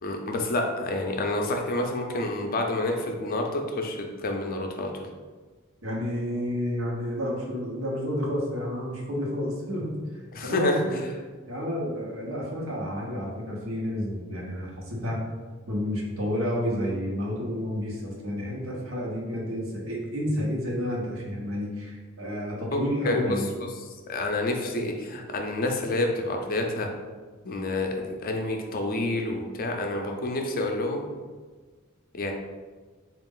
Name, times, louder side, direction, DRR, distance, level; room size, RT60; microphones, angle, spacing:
voice 1, 0.0-5.1 10.3-10.8 22.7-22.8 23.0-23.4 24.1-26.9 27.4-31.0 32.1-32.3, left 2 dB, 45° left, 3 dB, 0.5 m, -28 dB
voice 2, 5.8-9.9 10.4-11.0 11.5-15.2 15.7-23.5, equal, 70° right, -2 dB, 1.0 m, -30 dB
3.9 x 2.4 x 3.7 m, 1.4 s
head